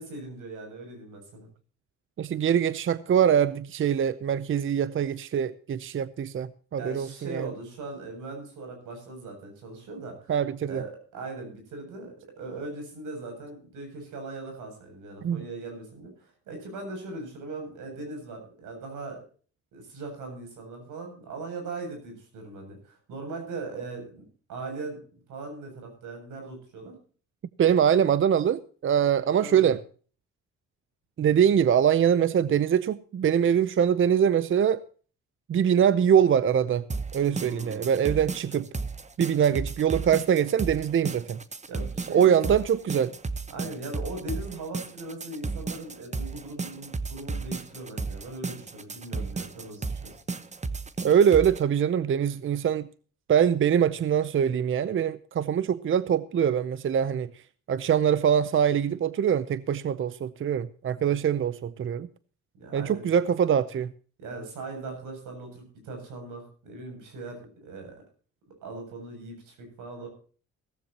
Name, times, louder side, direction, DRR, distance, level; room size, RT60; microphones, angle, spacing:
voice 1, 0.0-1.5 6.8-10.3 10.7-19.2 19.7-24.2 24.5-25.0 25.3-26.9 29.4-29.7 37.3-37.9 39.4-39.6 41.7-42.6 43.5-50.2 61.0-61.2 62.5-63.0 64.2-68.0 68.6-70.1, right 3 dB, 85° right, 7.3 m, -39 dB
voice 2, 2.2-7.5 10.3-10.8 15.2-15.4 27.6-29.8 31.2-34.8 35.5-36.8 37.1-38.7 39.2-41.4 42.1-43.1 51.0-52.9 53.3-57.3 57.7-62.1 62.7-63.9, right 8 dB, 45° right, 0.6 m, -23 dB
sound 1, 36.9-51.6, right 4 dB, 25° right, 1.1 m, -34 dB
16.5 x 14.5 x 2.9 m
cardioid pair, 90°, 30 cm